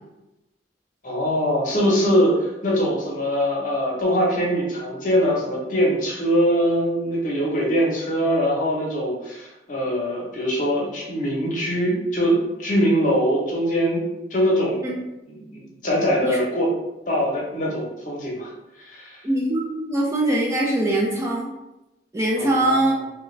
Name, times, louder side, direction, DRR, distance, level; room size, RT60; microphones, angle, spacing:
voice 1, 1.0-14.0 14.3-14.8 15.3-16.7 17.1-18.5 18.8-19.2 22.4-22.9, equal, 45° left, -3 dB, 0.9 m, -22 dB
voice 2, 19.2-21.5 22.1-22.9, right 1 dB, 15° right, -3 dB, 0.4 m, -22 dB
3.6 x 2.2 x 3.1 m, 0.95 s
head